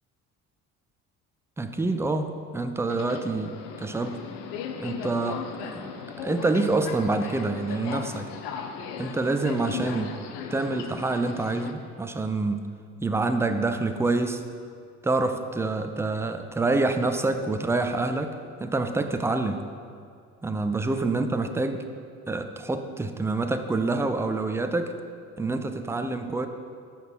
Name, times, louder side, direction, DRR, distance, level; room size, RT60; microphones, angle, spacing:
voice 1, 1.6-4.2 4.8-5.9 6.2-8.3 9.0-10.2 10.5-12.7 13.0-14.4 15.0-19.6 20.4-21.8 22.3-25.0 25.4-26.5, right 3 dB, 5° right, 8 dB, 0.4 m, -27 dB
Subway metro underground, 2.8-11.7, left 7 dB, 65° left, 0.8 m, -37 dB
5.7 x 5.4 x 6.0 m, 2.2 s
hypercardioid pair, 55°, 44 cm